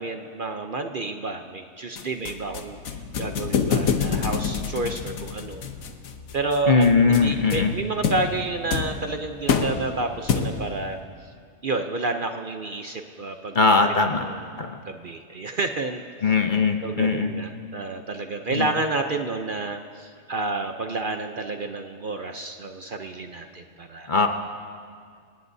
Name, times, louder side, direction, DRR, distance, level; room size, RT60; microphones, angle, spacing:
voice 1, 0.0-2.8 3.2-5.6 6.3-11.0 11.6-13.8 14.1-16.3 16.8-24.1, right 3 dB, 50° right, 5 dB, 0.8 m, -30 dB
sound 1, 2.0-10.8, left 6 dB, 85° left, 1.4 m, -28 dB
voice 2, 6.7-7.7 13.5-14.3 14.6-14.8 16.2-17.3 18.5-18.6 24.1-24.3, left 4 dB, 40° left, 5 dB, 0.9 m, -20 dB
28.0 x 18.0 x 2.7 m, 2.1 s
omnidirectional pair, 1.4 m